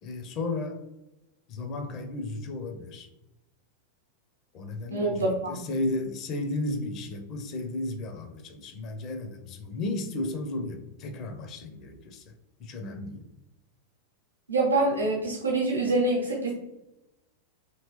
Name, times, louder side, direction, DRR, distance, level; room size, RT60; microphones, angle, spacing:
voice 1, 0.0-0.8 1.5-3.1 4.5-12.3 12.6-13.2, left 2 dB, 35° left, 5 dB, 0.6 m, -34 dB
voice 2, 4.9-5.6 14.5-16.5, right 2 dB, 75° right, -2 dB, 0.7 m, -25 dB
3.0 x 2.9 x 3.0 m, 0.99 s
figure-of-eight pair, 90°, 0 cm